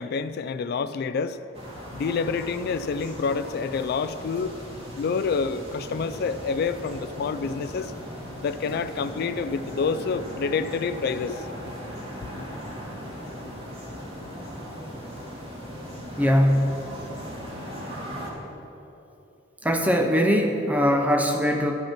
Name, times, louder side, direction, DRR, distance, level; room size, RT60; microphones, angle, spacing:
voice 1, 0.0-1.5 1.9-4.6 5.0-7.9 8.4-11.5, left 5 dB, 55° left, 13 dB, 0.3 m, -28 dB
sound 1, 1.5-18.3, equal, 30° right, 1.9 m, -38 dB
voice 2, 16.2-16.8 19.6-21.7, equal, 10° right, 4 dB, 0.4 m, -21 dB
13.0 x 5.4 x 5.8 m, 2.9 s
head